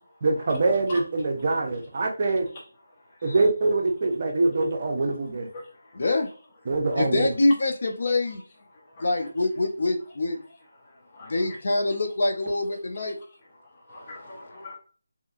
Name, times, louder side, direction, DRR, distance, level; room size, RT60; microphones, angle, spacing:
voice 1, 0.2-2.5 3.2-5.5 6.7-7.3, right 3 dB, 40° right, 2 dB, 0.5 m, -24 dB
voice 2, 3.1-3.4 5.5-6.1 6.8-6.9 8.7-9.3 10.8-11.6 13.6-14.8, left 2 dB, 30° left, -2 dB, 0.9 m, -45 dB
voice 3, 5.9-6.3 7.0-8.4 9.0-10.4 11.2-13.2, left 2 dB, 55° left, 4 dB, 0.5 m, -25 dB
2.7 x 2.4 x 2.4 m, 0.38 s
figure-of-eight pair, 165°, 0 cm